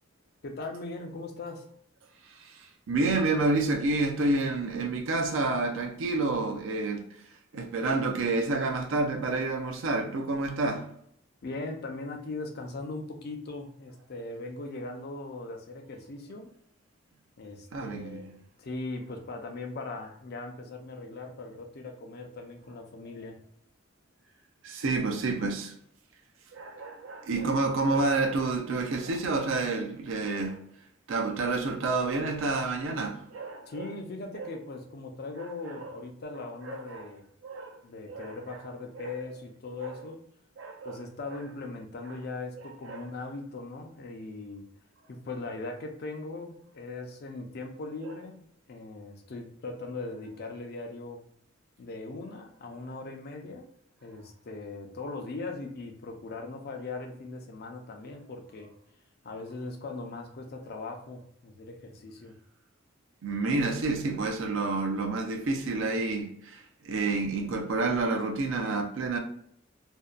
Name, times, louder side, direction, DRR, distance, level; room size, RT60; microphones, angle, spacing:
voice 1, 0.4-1.6 11.4-16.5 17.4-23.4 33.7-37.3 37.8-40.2 40.8-44.6 45.1-51.2 51.8-53.7 54.0-58.7 59.2-62.3, left 3 dB, 50° left, 0.4 m, -39 dB
voice 2, 2.4-7.0 7.5-10.9 17.7-18.2 24.6-25.7 26.5-30.6 31.1-33.8 34.3-34.5 35.8-35.9 36.6-37.0 37.4-37.8 38.1-38.4 39.8-39.9 40.6-41.0 42.9-43.0 48.0-48.1 63.2-69.2, right 3 dB, 70° right, 0.4 m, -29 dB
2.6 x 2.1 x 2.3 m
head